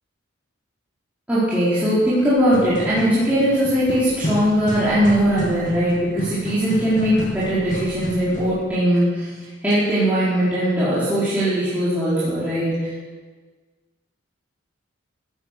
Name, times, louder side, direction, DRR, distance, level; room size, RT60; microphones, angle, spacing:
voice 1, 1.3-9.3 9.6-12.9, equal, 10° right, -12 dB, 4.6 m, -20 dB
sound 1, 2.4-8.6, equal, 40° left, 2.4 m, -31 dB
15.5 x 11.5 x 6.9 m, 1.4 s
head